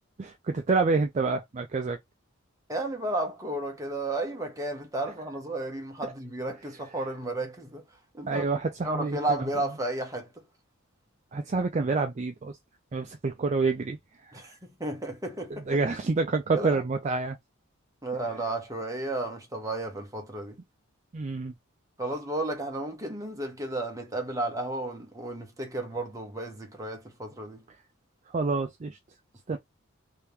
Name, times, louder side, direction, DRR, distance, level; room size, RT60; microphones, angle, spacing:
voice 1, 0.2-2.0 8.3-9.2 11.3-12.6 12.9-14.0 14.3-14.4 15.7-17.4 21.1-21.5 28.3-29.0 29.5-29.6, right 3 dB, 35° right, 0.4 m, -27 dB
voice 2, 2.7-7.8 8.1-8.5 8.8-10.4 14.3-15.8 16.5-16.8 18.0-20.6 22.0-27.6 29.5-29.6, right 2 dB, 15° right, 1.0 m, -33 dB
3.2 x 2.8 x 3.3 m
head